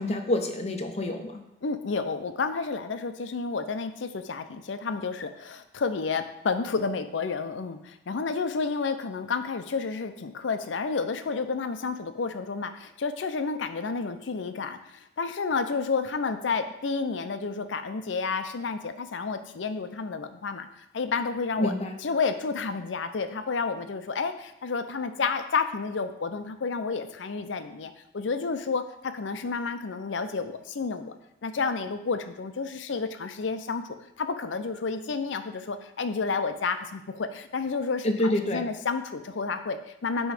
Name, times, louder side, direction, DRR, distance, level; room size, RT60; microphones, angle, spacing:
voice 1, 0.0-1.4 21.6-21.9 38.0-38.6, left 1 dB, 35° left, 4 dB, 0.7 m, -27 dB
voice 2, 1.6-20.7 20.9-21.7 22.0-31.1 31.4-33.8 34.2-40.3, left 4 dB, 90° left, 9 dB, 0.5 m, -30 dB
9.0 x 3.1 x 4.9 m, 0.84 s
head